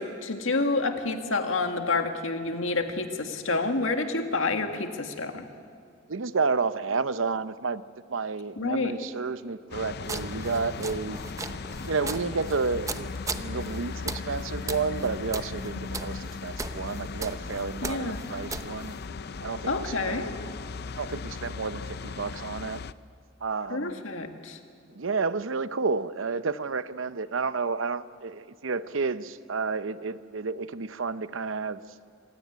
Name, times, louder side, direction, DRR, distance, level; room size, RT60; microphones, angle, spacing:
voice 1, 0.0-5.5 8.6-9.0 17.8-18.2 19.7-20.3 23.7-24.6, left 3 dB, 75° left, 5 dB, 1.9 m, -28 dB
voice 2, 6.1-7.8 8.1-11.2 11.8-18.9 19.4-20.3 21.0-22.8 23.4-24.0 24.9-31.8, right 4 dB, 75° right, 14 dB, 0.7 m, -31 dB
sound 1, 9.7-22.9, left 4 dB, 55° left, 0.5 m, -37 dB
sound 2, 10.0-19.1, right 3 dB, 15° right, 0.8 m, -39 dB
26.0 x 17.0 x 9.5 m, 2.3 s
head